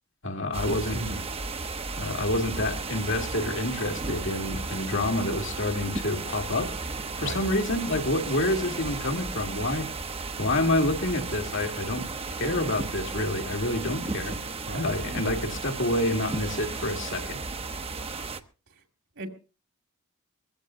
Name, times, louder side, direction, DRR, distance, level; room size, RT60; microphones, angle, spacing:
voice 1, 0.2-1.0 2.0-6.8 7.2-9.9 10.4-12.0 12.4-14.3 14.7-17.4, left 1 dB, 60° left, 4 dB, 2.2 m, -28 dB
sound 1, 0.5-18.4, right 3 dB, 25° right, 0.9 m, -34 dB
voice 2, 0.9-1.2 7.2-7.4 14.7-14.9 18.7-18.8 19.2-19.3, right 2 dB, 60° right, 3 dB, 2.4 m, -36 dB
22.0 x 15.5 x 2.7 m, 0.35 s
head